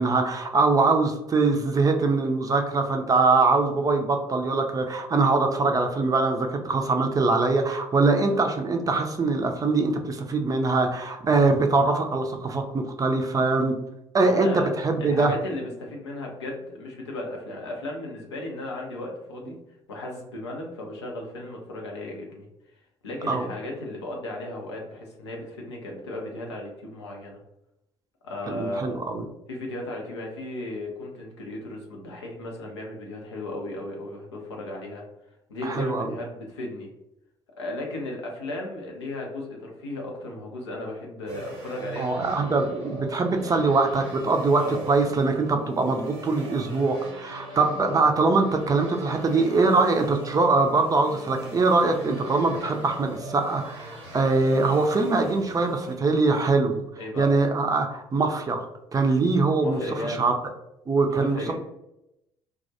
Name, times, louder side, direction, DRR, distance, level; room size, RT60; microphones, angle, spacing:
voice 1, 0.0-13.7 14.1-15.3 23.3-23.5 28.5-29.2 35.6-36.1 42.0-56.8 57.2-58.7 58.9-60.3 60.9-61.5, right 3 dB, 25° right, 4 dB, 0.4 m, -23 dB
voice 2, 14.2-14.7 15.0-19.5 19.9-22.5 23.0-27.4 28.2-29.0 29.5-35.0 35.5-36.9 37.6-42.3 43.4-43.6 44.6-44.8 47.8-47.9 57.0-57.3 59.6-60.3 61.1-61.5, left 1 dB, 80° left, 0 dB, 0.5 m, -35 dB
sound 1, 41.3-56.0, right 1 dB, 80° right, 0.7 m, -41 dB
2.2 x 2.1 x 2.7 m, 0.86 s
figure-of-eight pair, 45°, 14 cm